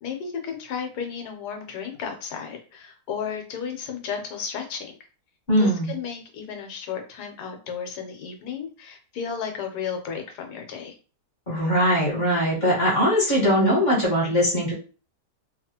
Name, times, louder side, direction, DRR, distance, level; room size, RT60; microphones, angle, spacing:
voice 1, 0.0-4.9 5.6-10.9, left 7 dB, 70° left, 4 dB, 1.2 m, -33 dB
voice 2, 5.5-5.9 11.5-14.7, equal, 30° left, -6 dB, 1.1 m, -21 dB
2.9 x 2.4 x 2.8 m, 0.36 s
omnidirectional pair, 1.8 m